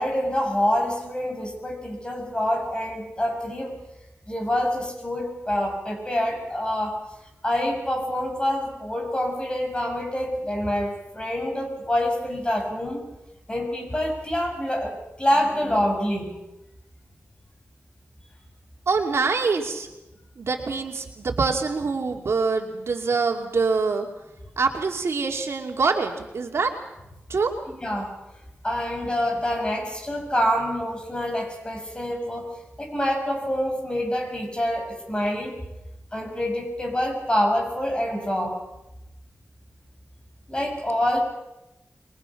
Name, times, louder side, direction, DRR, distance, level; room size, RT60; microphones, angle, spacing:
voice 1, 0.0-3.8 4.3-7.0 7.4-13.0 13.5-16.3 27.7-28.1 28.6-32.5 32.8-35.6 36.1-38.6 40.5-41.2, equal, 20° left, 2 dB, 6.8 m, -26 dB
voice 2, 18.9-19.9 20.4-24.1 24.6-26.7 27.3-27.5, right 4 dB, 75° right, 2 dB, 2.7 m, -24 dB
27.5 x 22.5 x 6.0 m, 0.95 s
wide cardioid pair, 115°, 5 cm